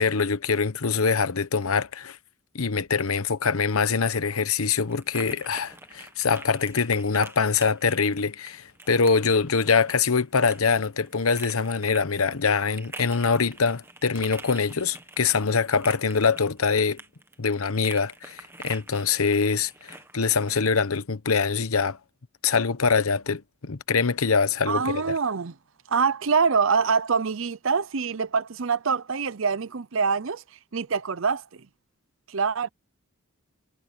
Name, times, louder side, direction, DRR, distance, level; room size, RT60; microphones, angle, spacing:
voice 1, 0.0-2.2 2.5-17.0 17.4-22.0 22.4-25.2, left 5 dB, 85° left, 1.0 m, -24 dB
sound 1, 3.7-20.9, right 2 dB, 10° right, 1.4 m, -46 dB
voice 2, 24.7-25.5 25.9-30.4 30.7-31.4 32.3-32.7, right 5 dB, 65° right, 0.7 m, -25 dB
head